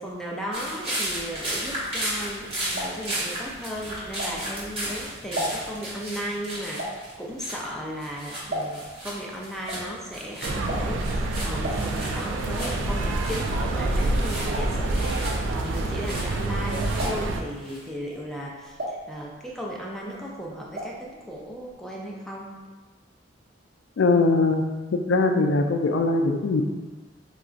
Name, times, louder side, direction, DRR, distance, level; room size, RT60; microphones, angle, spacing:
voice 1, 0.0-6.8 7.2-22.6, equal, ahead, -3 dB, 0.4 m, -36 dB
sound 1, 0.5-7.7 8.0-17.9, right 1 dB, 30° right, 1.0 m, -35 dB
sound 2, 2.7-4.7 5.1-9.0 9.3-16.6 16.9-17.5 18.0-19.7 20.0-21.1 21.3-21.4 21.7-21.8, equal, 65° right, 0.9 m, -36 dB
sound 3, 10.4-17.4, right 2 dB, 80° right, 0.3 m, -27 dB
voice 2, 24.0-24.6 24.9-26.6, left 3 dB, 80° left, 4 dB, 0.4 m, -21 dB
3.9 x 2.4 x 2.4 m, 1.3 s
head